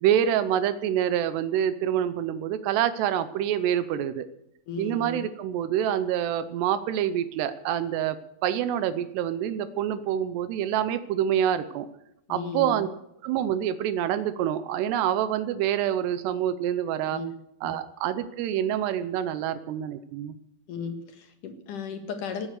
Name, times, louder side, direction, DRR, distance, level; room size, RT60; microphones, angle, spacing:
voice 1, 0.0-4.3 4.8-8.2 8.4-11.9 12.3-12.9 13.2-17.2 17.6-20.4, right 10 dB, 80° right, 13 dB, 2.9 m, -26 dB
voice 2, 4.7-5.2 12.3-12.9 17.1-17.3 17.6-17.7 20.7-22.5, left 4 dB, 60° left, 6 dB, 2.7 m, -35 dB
18.5 x 9.1 x 8.2 m, 0.80 s
omnidirectional pair, 4.8 m